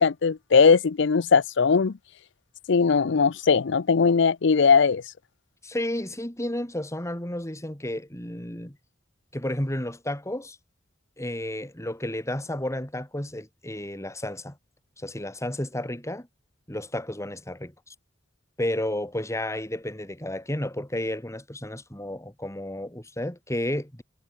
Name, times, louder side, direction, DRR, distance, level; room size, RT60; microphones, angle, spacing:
voice 1, 0.0-1.9 2.7-5.0, left 5 dB, 65° left, 0.6 m, -19 dB
voice 2, 5.6-8.8 9.3-10.6 11.2-14.6 15.0-16.3 16.7-17.9 18.6-24.0, left 1 dB, 15° left, 4.0 m, -32 dB
head